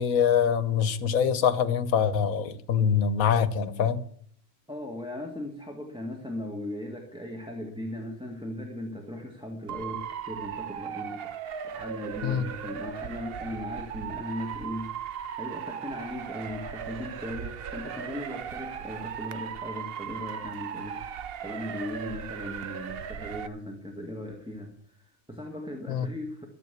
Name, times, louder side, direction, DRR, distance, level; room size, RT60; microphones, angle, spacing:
voice 1, 0.0-4.0 12.2-12.4 25.9-26.1, left 7 dB, 90° left, 1.4 m, -24 dB
voice 2, 4.7-11.4 11.6-26.5, left 1 dB, 5° right, 1.7 m, -38 dB
Motor vehicle (road) / Siren, 9.7-23.5, right 8 dB, 55° right, 0.8 m, -37 dB
13.5 x 8.0 x 8.1 m
omnidirectional pair, 1.4 m